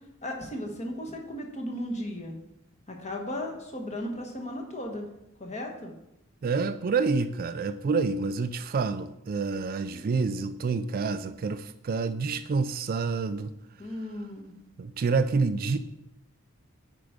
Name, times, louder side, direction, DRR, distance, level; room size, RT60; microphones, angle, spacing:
voice 1, 0.2-2.3 2.9-5.1 5.4-5.9 13.8-14.5, left 1 dB, 30° left, 2 dB, 1.3 m, -35 dB
voice 2, 6.4-13.5 14.8-15.8, right 4 dB, 45° right, 11 dB, 0.3 m, -28 dB
8.7 x 4.6 x 5.1 m, 0.84 s
head